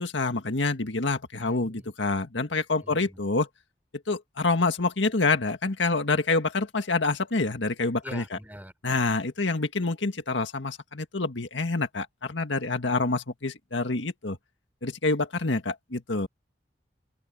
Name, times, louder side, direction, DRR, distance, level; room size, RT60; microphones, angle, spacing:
voice 1, 0.0-3.5 4.1-8.4 8.8-14.4 14.8-16.3, left 3 dB, 85° left, 1.8 m, -27 dB
voice 2, 1.4-1.9 2.8-3.2 8.0-8.7 12.9-13.1, equal, 10° right, 4.8 m, -44 dB
open air
head